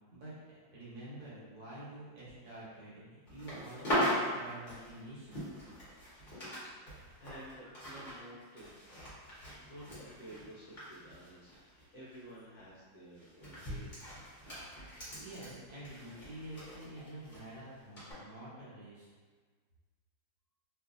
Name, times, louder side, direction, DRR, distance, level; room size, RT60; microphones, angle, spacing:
voice 1, 0.1-5.5 15.0-19.1, right 1 dB, 60° right, -9 dB, 1.3 m, -48 dB
sound 1, 3.3-6.6 6.9-11.8 12.1-12.4 13.2-17.4 18.0-18.1, equal, 35° left, 0.8 m, -39 dB
voice 2, 6.6-8.7 9.5-14.2, right 1 dB, 65° left, -8 dB, 1.0 m, -52 dB
3.0 x 2.4 x 2.4 m, 1.5 s
omnidirectional pair, 2.0 m